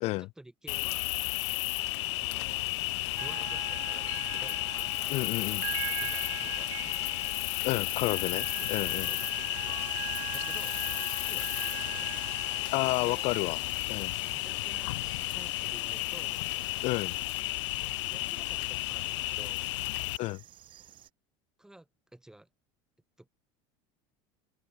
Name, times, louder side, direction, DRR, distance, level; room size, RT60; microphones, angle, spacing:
voice 1, 0.2-1.1 2.1-2.7 3.1-5.2 5.5-5.6 6.0-7.0 7.5-7.9 8.6-8.7 9.0-10.8 11.1-12.2 13.0-13.3 14.3-14.9 15.3-16.4 17.9-19.7 20.1-20.2 20.8-20.9 21.6-22.5 23.2-23.3, right 1 dB, 5° right, 2.3 m, -53 dB
Cricket, 0.7-20.2, left 20 dB, 90° left, 1.0 m, -33 dB
sound 1, 3.2-13.4, right 21 dB, 85° right, 1.0 m, -42 dB
voice 2, 5.1-5.6 7.6-9.1 12.7-13.6 13.9-14.1 16.8-17.2 20.2-20.4, left 22 dB, 45° left, 0.6 m, -31 dB
sound 2, 7.8-21.1, right 12 dB, 35° right, 2.8 m, -55 dB
open air
cardioid pair, 155°, 14 cm